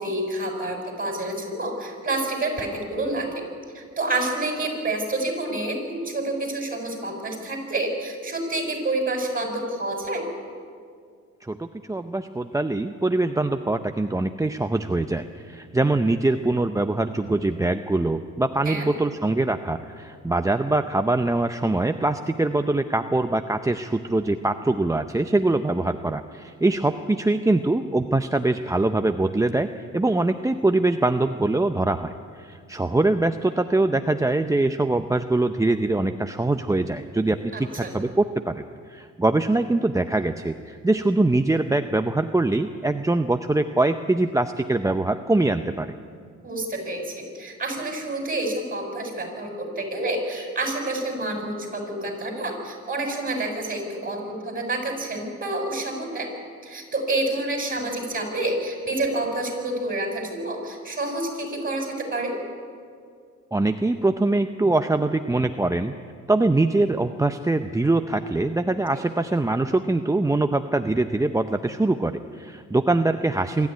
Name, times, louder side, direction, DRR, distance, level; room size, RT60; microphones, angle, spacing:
voice 1, 0.0-3.4 3.7-10.2 18.6-18.9 37.5-37.9 46.4-56.3 56.6-62.4, right 2 dB, 30° right, 3 dB, 6.5 m, -28 dB
voice 2, 11.4-32.1 32.4-38.6 38.9-45.9 63.5-65.9 66.3-73.7, right 2 dB, 10° right, 8 dB, 0.7 m, -23 dB
25.5 x 13.0 x 9.7 m, 2.2 s
cardioid pair, 90°, 30 cm